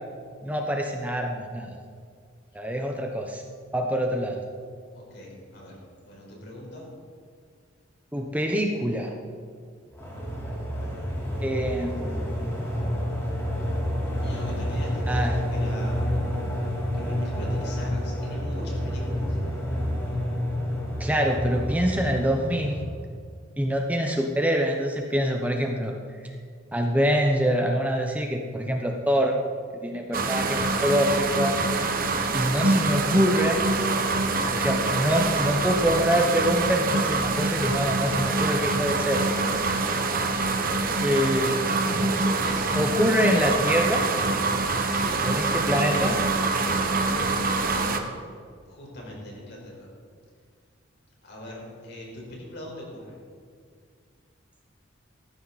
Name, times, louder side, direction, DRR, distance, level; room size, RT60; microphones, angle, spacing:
voice 1, 0.4-1.8 2.5-3.4 3.7-4.4 8.1-9.1 11.4-12.3 15.1-15.4 21.0-22.8 23.6-25.9 26.7-29.4 29.8-31.6 32.3-33.6 34.5-39.2 41.0-41.7 42.8-44.0 45.3-46.1, equal, 10° right, 2 dB, 1.0 m, -25 dB
voice 2, 4.9-6.9 14.2-19.4 40.4-40.8 42.2-42.7 44.9-46.3 46.6-48.1 48.7-49.9 51.2-53.2, left 1 dB, 55° left, -2 dB, 4.9 m, -41 dB
sound 1, 9.9-23.0, equal, 15° left, 4.0 m, -29 dB
sound 2, 30.1-48.0, right 3 dB, 45° right, 1.2 m, -25 dB
19.0 x 14.5 x 4.2 m, 2.1 s
head